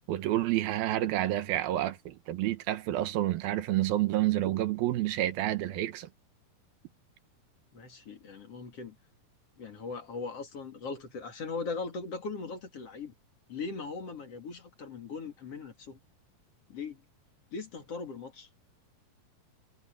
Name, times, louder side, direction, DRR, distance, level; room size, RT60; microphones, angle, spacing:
voice 1, 0.1-6.1, right 14 dB, 85° right, 3.0 m, -29 dB
voice 2, 7.7-9.0 9.6-13.1 13.5-16.0 16.7-17.0 17.5-18.5, left 4 dB, 45° left, 3.2 m, -39 dB
omnidirectional pair, 4.1 m